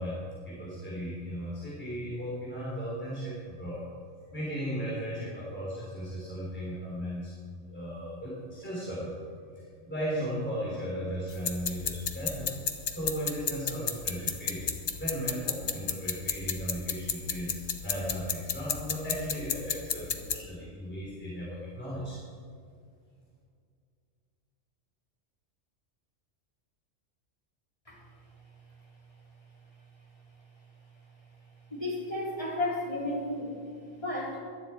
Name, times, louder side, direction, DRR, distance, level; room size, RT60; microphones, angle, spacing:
voice 1, 0.0-3.8 4.3-9.2 9.6-12.5 12.9-14.7 15.0-22.2, equal, 10° left, -7 dB, 3.5 m, -36 dB
sound 1, 11.3-20.4, left 6 dB, 65° left, 1.2 m, -33 dB
voice 2, 31.7-33.5 34.0-34.4, left 1 dB, 25° left, -6 dB, 4.1 m, -32 dB
18.0 x 12.5 x 4.5 m, 2.3 s
omnidirectional pair, 1.3 m